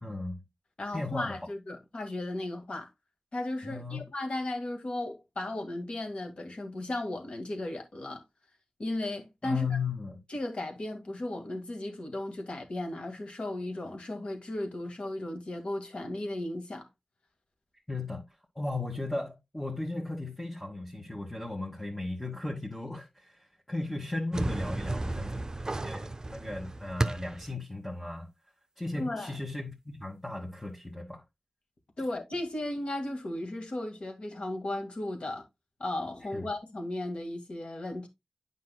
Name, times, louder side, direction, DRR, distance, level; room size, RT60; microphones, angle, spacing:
voice 1, 0.0-0.4 0.9-1.4 3.6-4.0 9.4-10.2 17.9-18.2 18.5-28.3 28.8-31.2 36.2-36.5, left 3 dB, 10° left, 1.4 m, -36 dB
voice 2, 0.8-2.9 3.3-8.2 8.8-9.7 10.3-16.9 28.9-29.4 32.0-35.4 35.8-38.1, left 1 dB, 65° left, 1.9 m, -35 dB
sound 1, 24.3-27.5, right 2 dB, 30° right, 0.6 m, -33 dB
9.4 x 5.4 x 2.3 m
wide cardioid pair, 90°, 2 cm